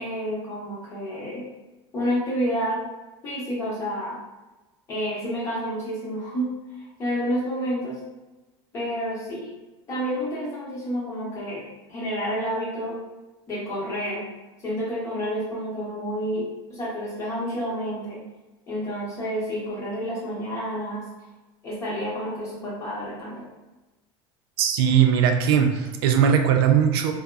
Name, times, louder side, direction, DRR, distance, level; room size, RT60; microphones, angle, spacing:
voice 1, 0.0-1.5 1.9-2.8 3.2-4.2 4.9-8.0 8.7-9.5 9.9-13.0 13.5-14.3 14.6-18.3 18.7-21.1 21.6-23.5, equal, 25° left, -5 dB, 0.8 m, -29 dB
voice 2, 24.6-27.1, right 8 dB, 80° right, 5 dB, 0.4 m, -19 dB
3.5 x 2.0 x 2.3 m, 1.1 s
cardioid pair, 165°, 12 cm